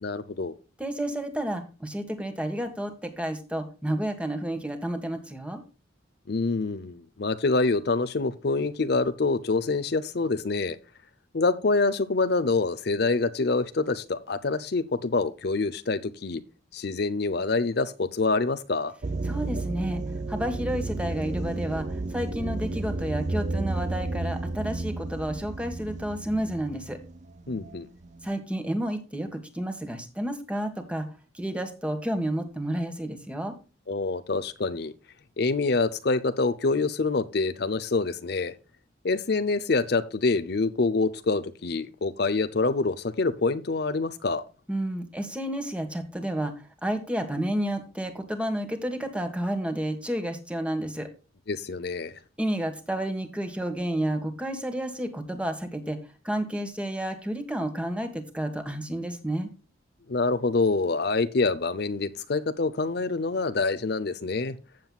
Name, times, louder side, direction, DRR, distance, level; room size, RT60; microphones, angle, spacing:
voice 1, 0.0-0.5 6.3-10.8 11.3-16.4 16.7-18.9 27.5-27.9 33.9-34.9 35.4-38.5 39.0-44.4 51.5-52.2 60.1-64.6, left 3 dB, 60° left, 0.7 m, -26 dB
voice 2, 0.8-5.6 19.2-20.0 20.3-27.0 28.2-31.1 31.3-33.5 44.7-46.5 46.8-51.1 52.4-56.0 56.2-59.5, right 1 dB, 5° right, 1.7 m, -31 dB
sound 1, 19.0-28.3, right 2 dB, 40° right, 0.5 m, -32 dB
15.0 x 7.8 x 2.3 m
head